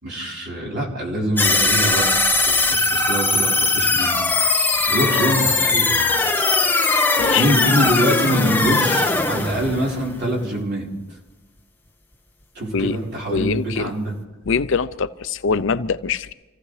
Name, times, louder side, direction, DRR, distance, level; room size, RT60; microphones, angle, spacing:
voice 1, 0.0-2.1 2.4-4.2 4.8-6.2 7.3-10.9 12.5-14.1, equal, 55° right, 4.4 m, -24 dB
sound 1, 1.4-10.6, left 3 dB, 10° left, 0.9 m, -19 dB
voice 2, 7.2-7.7 12.7-13.0 13.3-13.9 14.5-16.3, left 5 dB, 65° left, 0.5 m, -23 dB
27.5 x 15.5 x 3.3 m
head